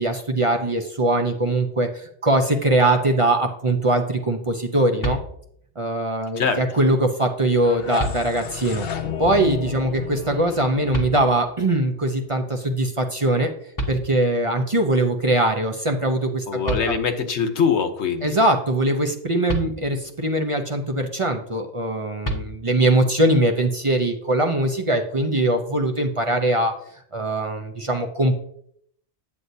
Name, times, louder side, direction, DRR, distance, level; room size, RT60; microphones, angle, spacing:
voice 1, 0.0-5.2 5.8-8.9 9.2-13.5 13.9-16.9 18.2-26.7 27.1-28.3, right 1 dB, 30° right, 4 dB, 0.7 m, -21 dB
sound 1, 5.0-5.8 7.3-7.4 8.0-8.7 10.9-11.7 13.4-13.5 13.8-14.6 16.3-16.4 16.6-17.4 19.5-20.3 22.2-23.0, equal, 20° left, 1.0 m, -31 dB
sound 2, 7.5-12.4, left 8 dB, 60° left, 0.9 m, -33 dB
voice 2, 16.5-18.3, left 6 dB, 80° left, 8 dB, 1.2 m, -23 dB
9.7 x 7.7 x 2.7 m, 0.67 s
omnidirectional pair, 1.1 m